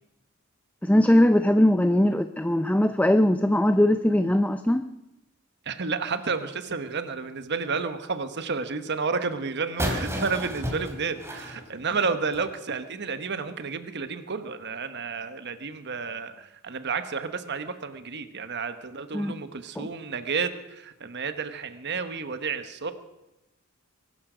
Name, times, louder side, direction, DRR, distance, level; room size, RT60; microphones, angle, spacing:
voice 1, 0.8-4.8 19.1-19.3 19.8-19.9, left 1 dB, 5° left, 10 dB, 0.5 m, -20 dB
voice 2, 5.7-22.9, right 5 dB, 55° right, 10 dB, 1.1 m, -31 dB
sound 1, 9.8-12.5, equal, 15° right, 2.7 m, -32 dB
23.0 x 12.5 x 5.0 m, 0.95 s
head